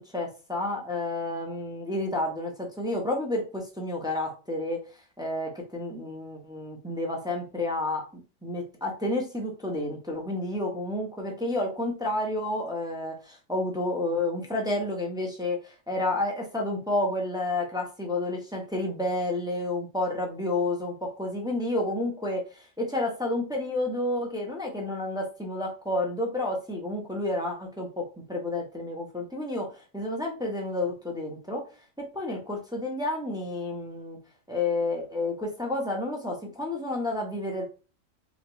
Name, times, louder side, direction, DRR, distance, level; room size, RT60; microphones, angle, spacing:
voice 1, 0.1-31.6 32.1-34.2 34.5-37.6, left 2 dB, 5° right, -1 dB, 0.8 m, -30 dB
5.0 x 2.4 x 3.0 m, 0.34 s
omnidirectional pair, 1.4 m